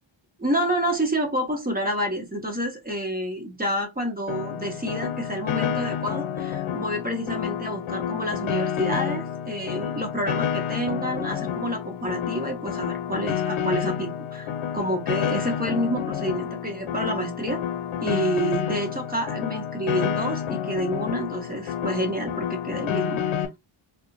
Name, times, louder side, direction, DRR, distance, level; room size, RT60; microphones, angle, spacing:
voice 1, 0.4-17.6 18.0-23.2, equal, 20° right, 0.8 m, -28 dB
Piano, 4.3-23.5, left 9 dB, 90° left, 0.6 m, -29 dB
2.4 x 2.2 x 3.8 m
wide cardioid pair, 175°, 48 cm